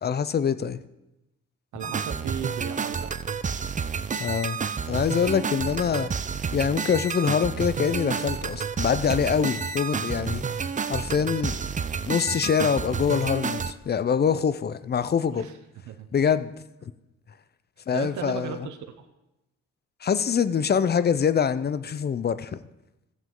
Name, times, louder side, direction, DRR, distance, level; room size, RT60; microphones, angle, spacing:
voice 1, 0.0-0.8 4.2-4.6 4.9-6.1 6.5-10.4 10.9-11.6 12.1-15.5 16.1-16.5 17.9-18.7 20.0-22.6, left 7 dB, 35° left, 14 dB, 0.5 m, -24 dB
voice 2, 1.7-3.1 15.3-15.5 15.9-16.1 17.9-19.1, right 9 dB, 85° right, 7 dB, 0.9 m, -36 dB
sound 1, 1.8-13.7, right 6 dB, 25° right, 0.5 m, -30 dB
14.5 x 7.4 x 3.8 m, 0.95 s
cardioid pair, 75°, 29 cm